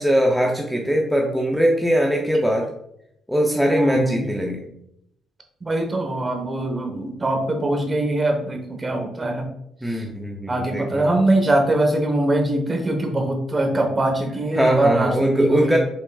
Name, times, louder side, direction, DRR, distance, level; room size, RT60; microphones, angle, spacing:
voice 1, 0.0-2.7 3.3-4.6 9.8-11.1 14.6-15.8, equal, ahead, 0 dB, 0.6 m, -21 dB
voice 2, 3.7-4.2 5.6-9.5 9.8-10.0 10.5-15.8, right 1 dB, 25° right, 3 dB, 1.1 m, -22 dB
5.9 x 3.7 x 2.3 m, 0.75 s
cardioid pair, 90°, 0 cm